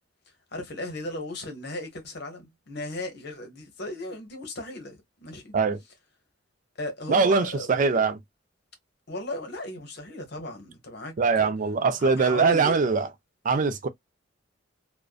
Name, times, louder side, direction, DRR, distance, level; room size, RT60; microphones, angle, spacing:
voice 1, 0.5-5.5 6.8-8.0 9.1-11.5 12.0-12.8, left 1 dB, 55° left, 0.9 m, -36 dB
voice 2, 7.1-8.2 11.2-13.1 13.4-13.9, right 4 dB, 40° right, 0.3 m, -22 dB
2.5 x 2.1 x 2.3 m
head